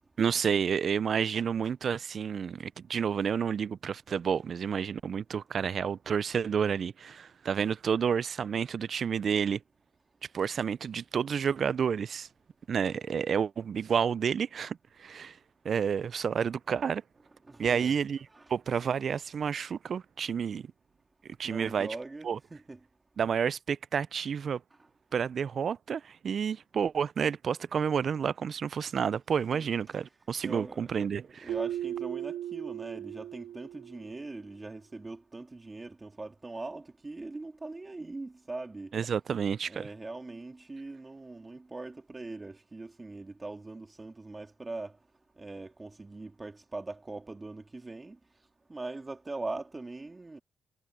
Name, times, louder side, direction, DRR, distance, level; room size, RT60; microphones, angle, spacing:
voice 1, 0.2-9.6 10.3-12.3 12.7-15.4 15.6-17.0 17.6-18.2 18.5-20.7 21.2-21.9 22.2-22.4 23.2-24.6 25.1-31.5 38.9-39.9, right 7 dB, 50° right, 0.4 m, -30 dB
voice 2, 17.5-17.9 18.3-18.5 21.4-22.8 29.5-29.8 30.4-31.1 31.4-38.9 39.7-44.9 45.4-48.2 48.7-50.4, right 2 dB, 20° right, 2.8 m, -41 dB
Keyboard (musical), 31.5-34.3, right 11 dB, 85° right, 1.6 m, -37 dB
cardioid pair, 90°, 0 cm